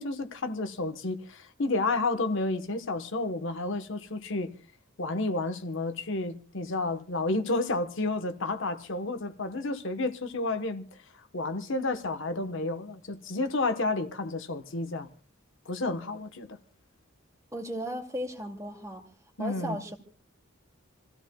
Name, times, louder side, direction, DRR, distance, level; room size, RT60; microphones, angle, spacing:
voice 1, 0.0-4.5 5.0-11.0 11.3-15.1 15.6-16.6 19.4-19.8, left 2 dB, 65° left, 1.1 m, -31 dB
voice 2, 17.5-19.1 19.4-20.0, equal, 15° right, 2.3 m, -35 dB
28.0 x 15.5 x 2.3 m
head